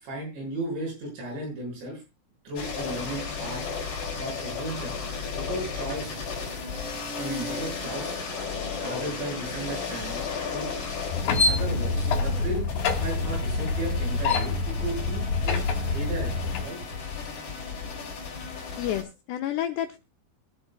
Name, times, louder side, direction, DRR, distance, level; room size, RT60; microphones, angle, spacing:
voice 1, 0.0-2.0 2.5-3.6 4.2-4.9 5.4-6.2 7.2-8.2 8.8-10.2 10.5-10.7 11.5-12.7 12.9-15.6 15.9-16.8, right 1 dB, 65° right, -1 dB, 8.6 m, -35 dB
sound 1, 2.5-19.0, left 5 dB, 40° left, 4.0 m, -34 dB
sound 2, 11.1-16.7, left 3 dB, 60° left, 3.6 m, -26 dB
voice 2, 18.4-20.0, left 11 dB, 85° left, 5 dB, 2.4 m, -31 dB
23.5 x 8.0 x 2.3 m, 0.26 s
omnidirectional pair, 5.5 m